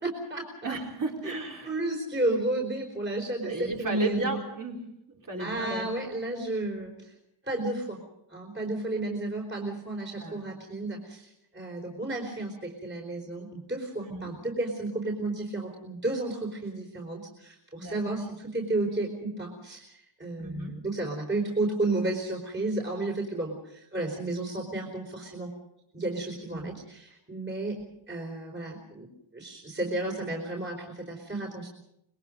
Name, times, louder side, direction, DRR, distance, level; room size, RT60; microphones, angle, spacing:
voice 1, 0.0-0.7 1.2-1.3 1.6-4.4 5.4-7.1 7.4-8.0 8.3-25.5 25.9-27.8 28.1-29.1 29.3-31.7, right 2 dB, 20° right, -1 dB, 4.4 m, -32 dB
voice 2, 0.6-1.8 3.4-4.8 5.3-5.9 10.2-10.4 14.0-14.3 17.8-18.0 20.4-20.8 26.5-26.7, right 2 dB, 40° right, 1 dB, 4.2 m, -34 dB
25.5 x 22.5 x 5.2 m, 0.80 s
wide cardioid pair, 135°, 49 cm